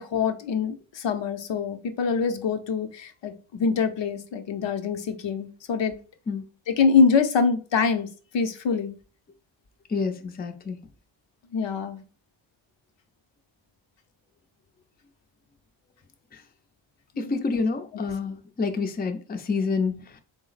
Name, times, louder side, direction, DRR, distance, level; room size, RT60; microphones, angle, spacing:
voice 1, 0.0-6.0 6.7-8.1 8.3-8.9 11.5-12.0, left 5 dB, 60° left, 0.7 m, -24 dB
voice 2, 9.9-10.8 16.3-16.4 17.2-20.2, left 4 dB, 20° left, 0.5 m, -28 dB
3.7 x 2.1 x 3.9 m
cardioid pair, 60°, 50 cm